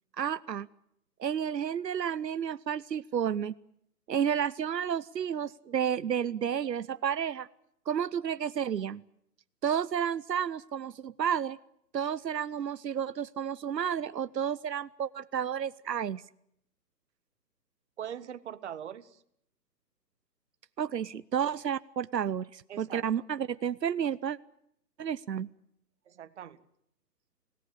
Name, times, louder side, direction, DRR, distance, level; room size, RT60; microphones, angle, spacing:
voice 1, 0.2-0.7 1.2-3.5 4.1-7.5 7.9-9.0 9.6-11.6 11.9-16.2 20.8-24.4 25.0-25.5, right 8 dB, 85° right, 16 dB, 0.9 m, -31 dB
voice 2, 18.0-19.2 21.4-21.6 22.7-23.3 26.1-26.6, right 9 dB, 45° right, 12 dB, 1.4 m, -42 dB
27.5 x 18.0 x 8.2 m, 0.74 s
hypercardioid pair, 150°, 49 cm